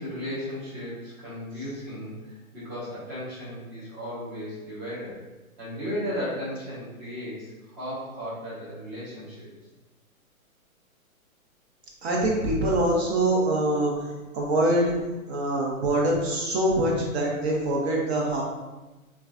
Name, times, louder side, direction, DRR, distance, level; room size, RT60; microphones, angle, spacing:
voice 1, 0.0-5.2 5.6-9.5, equal, 15° right, -11 dB, 0.5 m, -35 dB
voice 2, 12.0-14.9 15.3-18.4, right 1 dB, 45° right, -2 dB, 0.8 m, -24 dB
3.2 x 2.3 x 2.4 m, 1.1 s
hypercardioid pair, 140°, 43 cm